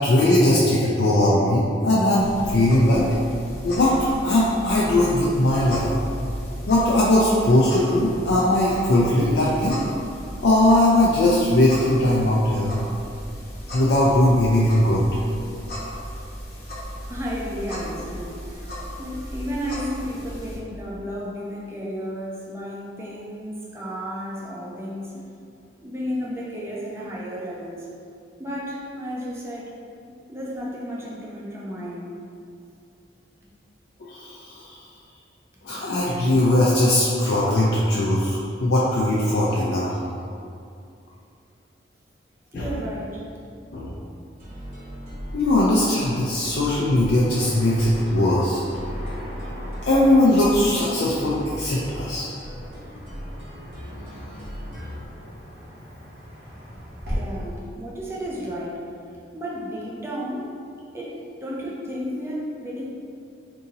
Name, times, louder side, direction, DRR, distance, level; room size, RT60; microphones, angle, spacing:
voice 1, 0.0-3.2 3.6-5.9 6.7-9.8 10.4-12.8 13.7-15.0 34.1-34.8 35.6-40.1 42.5-42.7 43.7-43.9 45.3-48.6 49.8-52.3, left 1 dB, 75° left, -6 dB, 0.4 m, -19 dB
sound 1, 2.2-20.6, equal, 55° left, 0.9 m, -36 dB
voice 2, 17.1-25.1 25.8-27.9 28.4-29.7 30.3-32.1 35.5-35.9 42.5-43.4 57.1-58.9 59.3-60.5 60.9-62.8, equal, 15° right, -5 dB, 0.5 m, -33 dB
sound 2, 44.4-55.1, equal, 35° right, 1.0 m, -38 dB
Car passing by / Traffic noise roadway noise, 47.3-57.2, equal, 65° right, 1.2 m, -39 dB
2.7 x 2.7 x 3.8 m, 2.5 s
head